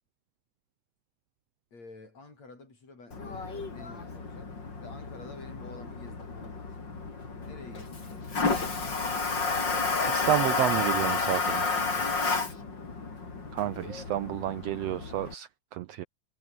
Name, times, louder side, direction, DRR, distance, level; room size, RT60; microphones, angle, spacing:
voice 1, 1.7-6.9 7.4-8.8 11.9-12.6, left 3 dB, 60° left, 8.6 m, -49 dB
Toilet flush, 3.1-15.3, left 4 dB, 35° left, 4.3 m, -31 dB
voice 2, 10.1-11.7 13.5-16.0, right 13 dB, 75° right, 1.6 m, -30 dB
omnidirectional pair, 3.5 m